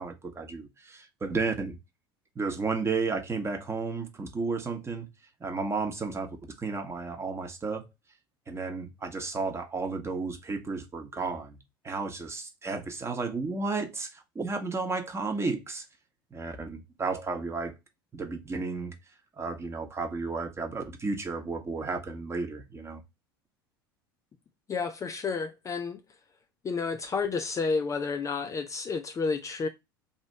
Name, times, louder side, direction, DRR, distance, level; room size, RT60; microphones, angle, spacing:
voice 1, 0.0-1.8 2.4-5.1 5.4-7.8 8.5-11.6 11.8-15.8 16.3-17.7 18.1-19.0 19.4-23.0, right 4 dB, 20° right, 1.0 m, -33 dB
voice 2, 24.7-26.0 26.6-29.7, left 4 dB, 25° left, 0.4 m, -30 dB
2.9 x 2.7 x 4.3 m
hypercardioid pair, 75°, 12 cm